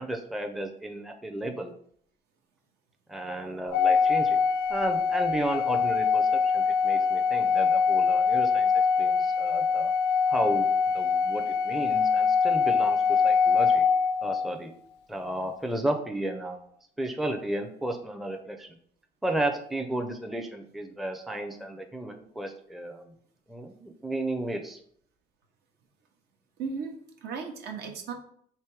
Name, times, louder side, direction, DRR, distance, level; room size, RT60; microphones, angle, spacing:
voice 1, 0.0-1.7 3.1-4.4 4.7-8.7 9.0-9.9 10.3-10.6 10.9-13.8 14.2-14.7 15.1-16.7 17.0-18.7 19.2-23.1 23.5-24.8, right 1 dB, ahead, 4 dB, 0.4 m, -33 dB
Organ, 3.7-14.6, left 5 dB, 80° left, 0.4 m, -24 dB
voice 2, 26.6-28.1, right 5 dB, 75° right, 3 dB, 0.9 m, -36 dB
3.3 x 3.0 x 4.6 m, 0.64 s
cardioid pair, 110°, 17 cm